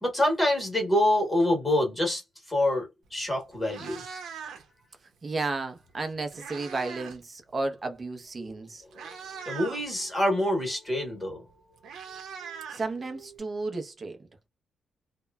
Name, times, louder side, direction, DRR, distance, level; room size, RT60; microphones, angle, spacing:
voice 1, 0.0-2.2 2.5-4.0 9.4-11.4 12.4-12.6, left 1 dB, 10° left, 1.1 m, -26 dB
Meow, 3.1-3.2 3.5-4.8 5.9-7.2 7.5-7.8 8.5-8.6 8.9-9.8 11.2-11.3 11.5-13.4, right 6 dB, 75° right, 0.7 m, -41 dB
voice 2, 5.2-8.8 12.7-14.2, right 3 dB, 25° right, 0.6 m, -33 dB
2.9 x 2.1 x 2.2 m
wide cardioid pair, 165°, 0 cm